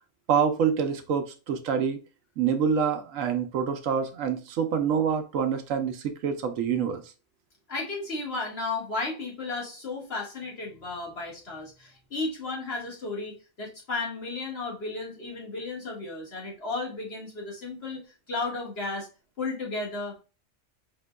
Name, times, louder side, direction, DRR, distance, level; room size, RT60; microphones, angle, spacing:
voice 1, 0.3-2.0 2.4-7.0, right 7 dB, 85° right, 1.1 m, -26 dB
voice 2, 7.7-18.0 18.3-19.1 19.4-20.2, left 3 dB, 55° left, 1.8 m, -34 dB
5.1 x 3.6 x 2.2 m
omnidirectional pair, 1.3 m